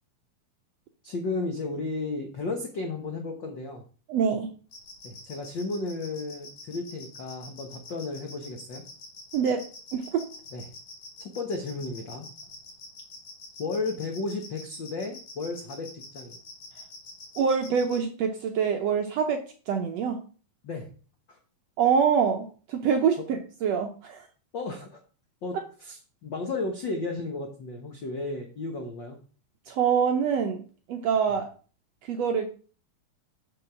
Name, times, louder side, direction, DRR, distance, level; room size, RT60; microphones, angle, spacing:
voice 1, 1.0-3.8 5.0-8.8 10.5-10.7 11.2-12.3 13.6-16.4 20.6-20.9 21.3-21.4 24.5-25.0 25.4-29.2 31.3-31.4, left 3 dB, 90° left, 3 dB, 1.0 m, -34 dB
voice 2, 4.1-4.5 9.3-9.6 9.9-10.2 17.4-20.2 21.8-23.2 23.6-24.2 29.7-30.6 30.9-31.5 32.1-32.5, right 7 dB, 75° right, 4 dB, 1.5 m, -25 dB
sound 1, 4.7-18.0, left 3 dB, 55° left, 4.6 m, -45 dB
7.0 x 7.0 x 5.7 m, 0.39 s
omnidirectional pair, 4.0 m